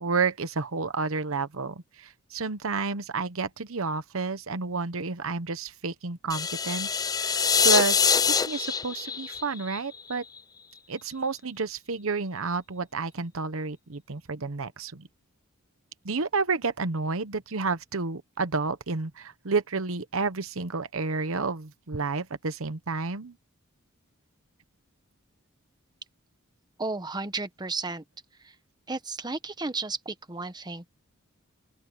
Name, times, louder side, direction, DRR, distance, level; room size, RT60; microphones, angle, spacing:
voice 1, 0.0-10.2 10.9-15.1 16.0-23.3, right 4 dB, 70° right, 1.0 m, -30 dB
sound 1, 6.3-10.4, left 6 dB, 20° left, 0.4 m, -25 dB
voice 2, 26.8-28.0 28.4-28.5 28.9-30.9, right 3 dB, 20° right, 1.2 m, -33 dB
open air
head